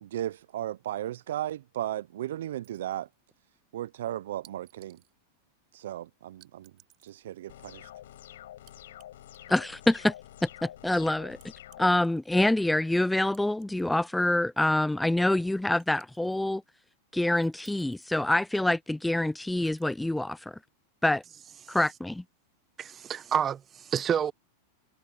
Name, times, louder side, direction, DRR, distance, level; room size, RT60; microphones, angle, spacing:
voice 1, 0.0-3.1 3.7-5.0 5.7-6.7 7.0-7.9, right 12 dB, 75° right, 0.4 m, -35 dB
sound 1, 2.6-3.2 4.4-5.1 6.4-7.2 8.7-9.1 9.3-10.2 11.4-12.5 13.3-14.4 14.7-14.8 15.8-16.5 17.4-18.2 19.7-19.9, right 17 dB, 45° right, 7.5 m, -61 dB
sound 2, 7.5-11.9, left 12 dB, 75° left, 5.8 m, -48 dB
voice 2, 9.5-10.1 10.4-11.4 11.8-16.6 17.1-20.6 21.0-21.2 21.7-22.2, left 1 dB, 5° left, 0.4 m, -26 dB
voice 3, 22.8-24.3, right 8 dB, 30° right, 1.3 m, -29 dB
hypercardioid pair, 105°, 0 cm